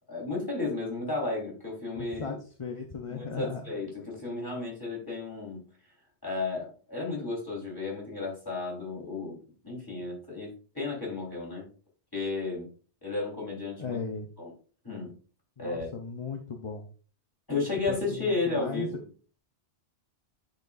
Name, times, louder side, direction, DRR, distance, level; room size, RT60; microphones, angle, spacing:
voice 1, 0.1-2.4 3.1-5.6 6.2-9.4 9.6-11.7 12.1-12.7 13.0-14.0 14.4-14.5 14.8-15.1 15.6-15.9 17.5-19.0, left 3 dB, 20° left, -4 dB, 3.5 m, -33 dB
voice 2, 1.9-3.6 13.8-14.3 15.6-16.9 17.5-18.9, left 4 dB, 35° left, 3 dB, 0.6 m, -37 dB
11.0 x 4.7 x 2.4 m, 0.38 s
omnidirectional pair, 1.1 m